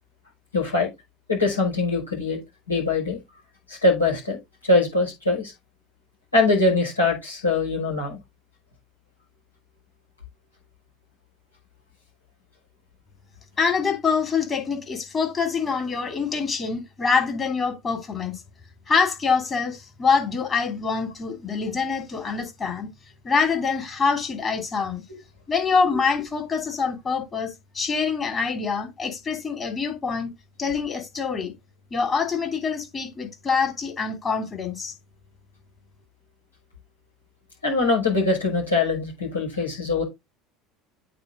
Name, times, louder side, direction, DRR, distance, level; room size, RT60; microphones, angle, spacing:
voice 1, 0.5-0.9 1.3-2.4 2.7-3.2 3.7-4.4 4.6-5.5 6.3-8.2 25.9-26.0 37.6-40.0, left 3 dB, 85° left, 5.3 m, -22 dB
voice 2, 13.6-18.4 18.9-22.9 23.2-25.0 25.5-30.3 30.6-31.5 31.9-34.9, left 5 dB, 25° left, 2.9 m, -25 dB
9.0 x 4.7 x 3.9 m
figure-of-eight pair, 70°, 0 cm